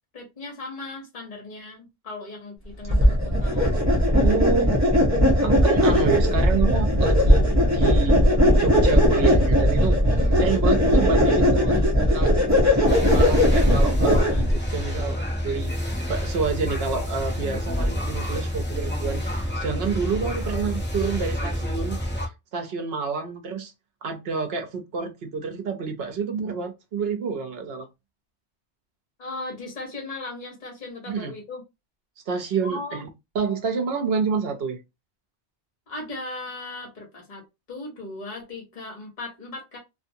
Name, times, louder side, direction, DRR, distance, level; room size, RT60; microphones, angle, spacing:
voice 1, 0.1-3.7 10.1-10.4 29.2-31.6 32.6-33.1 35.9-37.4 37.7-39.8, left 2 dB, 45° left, 1.2 m, -37 dB
sound 1, 2.9-14.6, equal, 15° right, 0.8 m, -18 dB
voice 2, 4.1-4.8 5.4-7.5 7.7-8.2 8.6-10.0 10.4-11.8 12.1-12.4 12.8-22.0 22.5-23.7 24.0-27.9 31.1-31.3 32.3-33.1 33.3-34.8, right 5 dB, 65° right, 0.9 m, -28 dB
sound 2, 12.9-22.3, equal, 15° left, 0.4 m, -28 dB
2.6 x 2.5 x 2.6 m
omnidirectional pair, 1.1 m